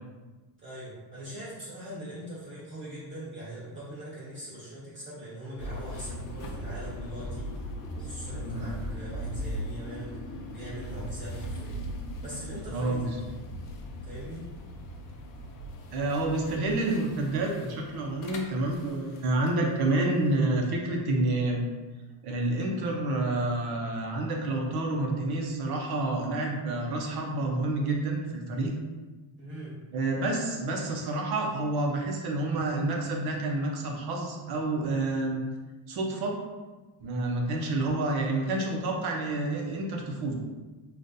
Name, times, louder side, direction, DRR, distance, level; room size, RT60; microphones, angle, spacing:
voice 1, 0.6-7.5 7.9-11.9 12.2-13.2 14.0-14.5 29.4-29.8, right 1 dB, 25° right, -8 dB, 1.5 m, -41 dB
sound 1, 5.6-19.5, equal, 45° left, 0.5 m, -39 dB
voice 2, 12.7-13.2 15.9-21.6 22.2-28.7 29.9-35.4 35.9-36.4 37.0-40.3, right 2 dB, 50° right, 1 dB, 0.8 m, -29 dB
3.7 x 2.5 x 2.6 m, 1.2 s
cardioid pair, 135°, 49 cm